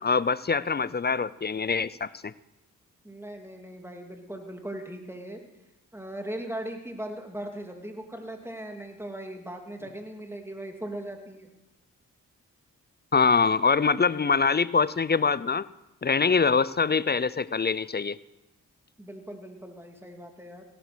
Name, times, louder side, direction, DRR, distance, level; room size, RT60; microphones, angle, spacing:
voice 1, 0.0-2.3 13.1-15.7 16.0-18.2, left 5 dB, 30° left, 19 dB, 0.5 m, -24 dB
voice 2, 3.0-5.4 5.9-11.5 19.0-20.6, right 1 dB, 5° right, 3 dB, 2.9 m, -39 dB
17.0 x 11.5 x 6.2 m, 0.95 s
cardioid pair, 50°, 36 cm